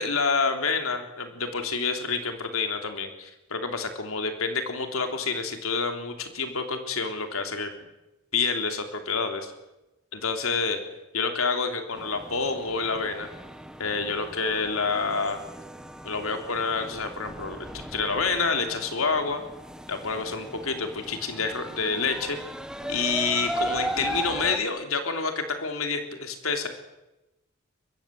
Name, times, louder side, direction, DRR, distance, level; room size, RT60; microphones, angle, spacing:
voice 1, 0.0-7.7 8.3-9.5 10.1-10.8 11.1-13.3 13.8-15.4 16.0-19.4 19.9-22.4 22.9-26.7, left 4 dB, 90° left, 6 dB, 3.5 m, -28 dB
sound 1, 11.9-24.6, right 1 dB, 5° right, 1.2 m, -37 dB
23.5 x 21.0 x 7.8 m, 0.97 s
head